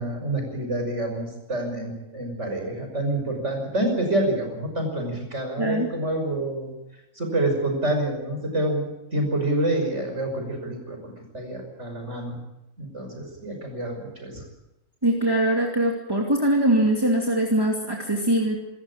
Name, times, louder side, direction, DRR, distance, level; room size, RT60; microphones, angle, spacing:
voice 1, 0.0-6.7 7.2-12.4 12.8-14.4, right 1 dB, 65° right, 3 dB, 6.3 m, -27 dB
voice 2, 15.0-18.6, right 1 dB, 20° right, 0 dB, 2.6 m, -22 dB
27.0 x 14.0 x 8.6 m, 0.91 s
omnidirectional pair, 1.3 m